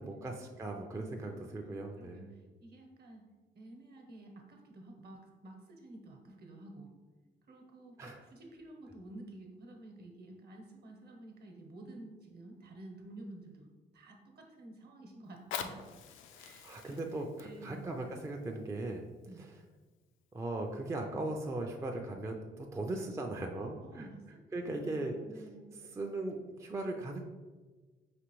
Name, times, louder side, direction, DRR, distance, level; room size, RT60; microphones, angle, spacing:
voice 1, 0.0-2.2 8.0-8.2 16.3-19.0 19.4-19.5 20.3-24.1 24.5-25.1 25.9-27.2, right 2 dB, 15° right, 2 dB, 0.4 m, -38 dB
voice 2, 1.2-3.2 3.5-6.9 7.5-15.9 16.4-17.9 19.2-19.5 23.8-25.8, right 2 dB, 55° right, 2 dB, 0.9 m, -51 dB
Fire, 15.2-20.2 20.9-21.0, left 8 dB, 80° left, 0.4 m, -46 dB
5.0 x 2.9 x 3.0 m, 1.3 s
cardioid pair, 90°, 20 cm